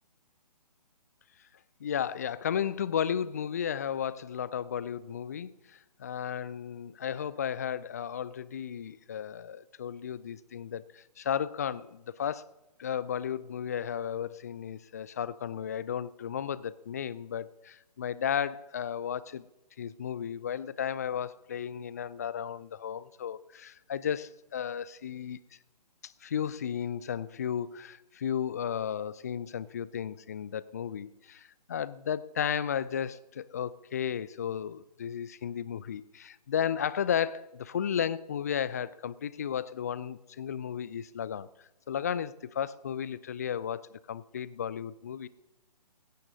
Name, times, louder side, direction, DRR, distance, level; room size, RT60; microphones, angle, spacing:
voice 1, 1.8-12.5 12.8-19.4 19.8-25.4 26.0-41.5 41.9-45.3, left 8 dB, 25° left, 18 dB, 0.3 m, -34 dB
16.5 x 16.5 x 2.7 m, 0.97 s
figure-of-eight pair, 140°, 21 cm